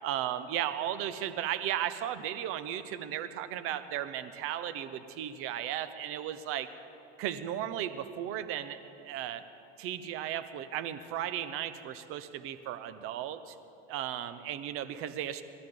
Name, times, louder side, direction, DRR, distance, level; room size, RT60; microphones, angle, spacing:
voice 1, 0.0-6.7 7.2-9.4 9.8-13.5 13.9-15.4, right 11 dB, 45° right, 11 dB, 0.9 m, -35 dB
20.5 x 12.5 x 3.9 m, 2.7 s
supercardioid pair, 120°, 31 cm